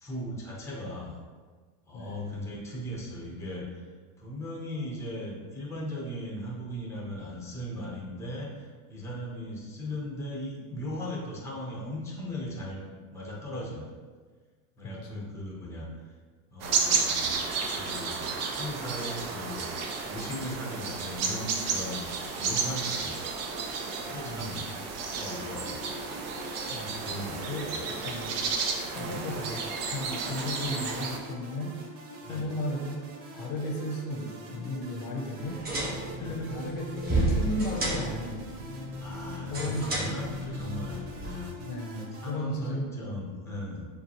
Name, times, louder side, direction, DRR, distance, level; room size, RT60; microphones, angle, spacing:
voice 1, 0.0-1.2 1.9-3.8 4.2-13.9 14.8-15.9 16.5-17.3 17.7-19.7 20.1-22.0 22.3-23.2 24.0-24.6 25.1-26.0 26.8-27.8 29.0-29.2 32.2-32.5 36.1-36.4 39.0-41.5 42.2-43.9, equal, 5° left, -4 dB, 0.9 m, -38 dB
voice 2, 1.9-2.3 14.8-15.2 24.2-24.6 26.7-27.0 27.5-28.4 28.9-31.8 32.3-33.0 33.3-35.6 36.2-38.4 39.5-39.9 41.6-43.2, left 1 dB, 50° left, 0 dB, 0.8 m, -35 dB
sound 1, 16.6-31.2, right 5 dB, 35° right, 0.5 m, -32 dB
sound 2, 25.2-42.3, right 1 dB, 70° right, 1.1 m, -45 dB
sound 3, 35.4-41.4, right 1 dB, 20° right, 1.3 m, -32 dB
6.5 x 2.3 x 3.0 m, 1.5 s
supercardioid pair, 125°, 46 cm